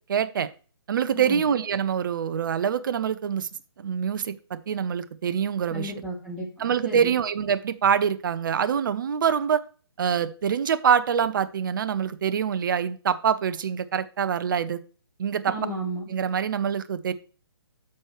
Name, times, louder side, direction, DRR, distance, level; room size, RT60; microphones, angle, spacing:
voice 1, 0.1-0.5 0.9-3.5 3.8-5.9 6.6-9.6 10.0-14.8 15.2-15.5 16.1-17.1, right 7 dB, 50° right, 13 dB, 0.7 m, -25 dB
voice 2, 5.7-7.1 15.5-16.1, right 1 dB, 10° right, -6 dB, 3.3 m, -34 dB
13.0 x 4.6 x 3.1 m, 0.37 s
figure-of-eight pair, 140°, 14 cm